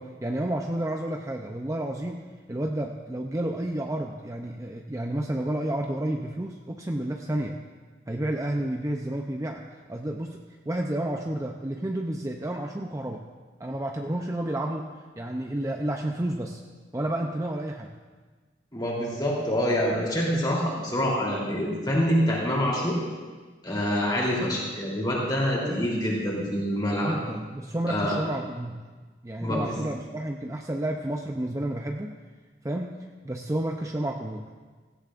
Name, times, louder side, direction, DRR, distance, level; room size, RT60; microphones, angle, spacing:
voice 1, 0.0-7.6 8.1-9.6 9.9-13.2 13.6-14.9 15.2-16.6 16.9-17.9 25.6-25.9 27.0-28.8 29.2-32.2 32.6-33.0 33.2-34.4, right 1 dB, 15° right, 2 dB, 0.5 m, -31 dB
voice 2, 18.7-23.0 23.6-27.1 27.9-28.1 29.4-29.8, equal, 25° left, -4 dB, 3.2 m, -26 dB
16.5 x 15.5 x 2.5 m, 1.4 s
head